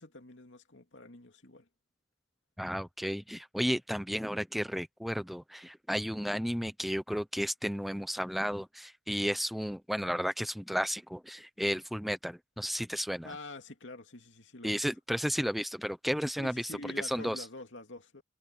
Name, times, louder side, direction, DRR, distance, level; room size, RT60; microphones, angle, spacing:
voice 1, 0.0-1.7 13.2-14.8 16.4-18.2, left 2 dB, 70° left, 2.7 m, -46 dB
voice 2, 2.6-13.4 14.6-16.7 17.0-17.4, equal, ahead, 0.8 m, -33 dB
head